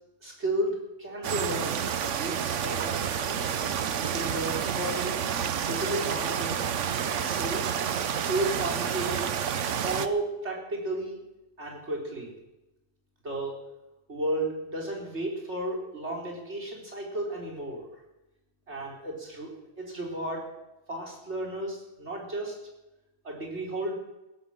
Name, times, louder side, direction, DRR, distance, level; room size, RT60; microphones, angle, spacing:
voice 1, 0.2-3.3 4.0-5.2 5.6-6.6 7.1-7.6 8.1-9.3 9.8-11.2 11.6-12.4 13.2-13.6 14.1-17.9 18.7-19.5 19.8-20.5 20.9-22.6 23.2-23.9, right 1 dB, 30° right, -1 dB, 4.0 m, -33 dB
sound 1, 1.2-10.1, right 8 dB, 65° right, 0.7 m, -29 dB
15.5 x 12.5 x 7.5 m, 0.97 s
omnidirectional pair, 2.3 m